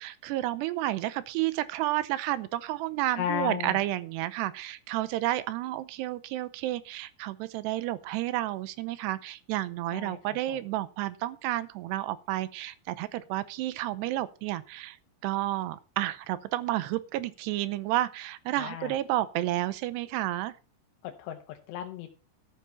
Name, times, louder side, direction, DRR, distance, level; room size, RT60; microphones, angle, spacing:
voice 1, 0.0-15.0 15.2-20.6, right 15 dB, 85° right, 15 dB, 2.9 m, -31 dB
voice 2, 3.0-3.8 9.9-10.6 18.6-19.0 21.0-22.2, left 9 dB, 85° left, 4 dB, 3.1 m, -35 dB
13.0 x 6.9 x 5.8 m, 0.34 s
omnidirectional pair, 4.8 m